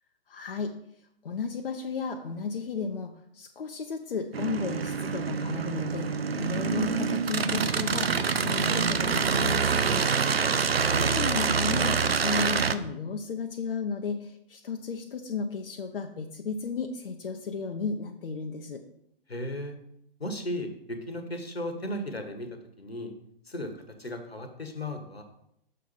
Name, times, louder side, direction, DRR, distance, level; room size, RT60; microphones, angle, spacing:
voice 1, 0.3-0.7 1.2-10.0 10.4-18.8, left 4 dB, 65° left, 4 dB, 0.7 m, -34 dB
sound 1, 4.3-12.7, right 5 dB, 80° right, 0.6 m, -26 dB
voice 2, 10.4-11.3 19.3-19.7 20.2-22.5 22.8-23.1 23.5-25.2, left 1 dB, 90° left, 6 dB, 1.3 m, -36 dB
6.4 x 4.1 x 5.5 m, 0.75 s
figure-of-eight pair, 120°, 30 cm